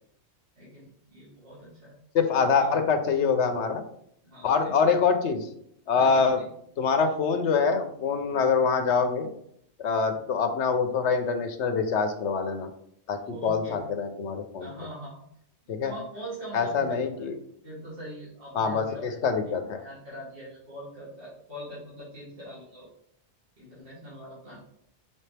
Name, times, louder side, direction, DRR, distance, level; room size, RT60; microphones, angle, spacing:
voice 1, 0.5-1.9 2.6-2.7 4.2-4.8 6.0-6.4 10.1-10.3 13.2-13.8 14.6-15.2 15.8-17.3 17.6-19.2 19.8-22.9 23.6-24.6, right 1 dB, 55° right, -9 dB, 3.1 m, -42 dB
voice 2, 2.1-3.8 4.4-5.5 5.9-6.4 6.8-9.3 9.8-12.7 13.1-14.7 15.7-15.9 16.5-17.4 18.5-19.8, left 5 dB, 85° left, 7 dB, 1.1 m, -25 dB
6.9 x 4.3 x 3.3 m, 0.69 s
omnidirectional pair, 1.1 m